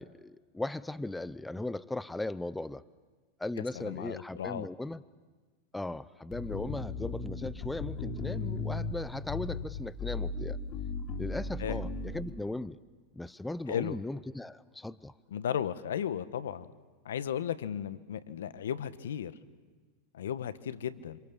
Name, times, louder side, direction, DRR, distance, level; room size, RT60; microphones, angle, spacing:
voice 1, 0.0-2.8 3.4-5.0 5.7-10.6 11.2-12.8 13.1-15.1, left 2 dB, 5° left, 17 dB, 0.7 m, -38 dB
voice 2, 3.7-4.7 11.6-11.8 13.7-14.0 15.3-16.7 17.0-19.3 20.1-21.2, left 9 dB, 75° left, 14 dB, 1.2 m, -35 dB
sound 1, 6.3-12.3, left 4 dB, 40° left, 3.3 m, -36 dB
28.0 x 26.5 x 7.2 m, 1.4 s
hypercardioid pair, 100°, 0 cm